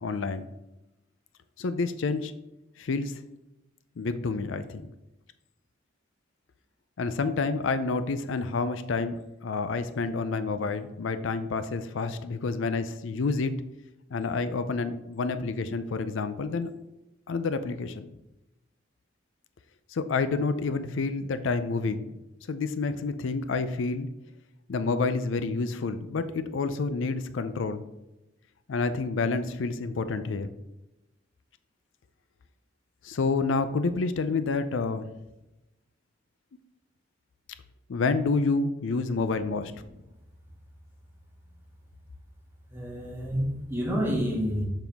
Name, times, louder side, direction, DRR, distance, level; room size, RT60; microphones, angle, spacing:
voice 1, 0.0-0.5 1.6-2.3 2.8-3.1 4.0-4.9 7.0-13.5 14.1-16.7 17.3-18.2 19.9-22.1 22.5-24.1 24.7-27.8 28.7-30.5 33.0-35.1 37.9-39.7, left 4 dB, 70° left, 11 dB, 0.4 m, -29 dB
voice 2, 42.7-44.7, equal, 10° right, -4 dB, 1.9 m, -29 dB
7.0 x 5.6 x 3.4 m, 0.96 s
head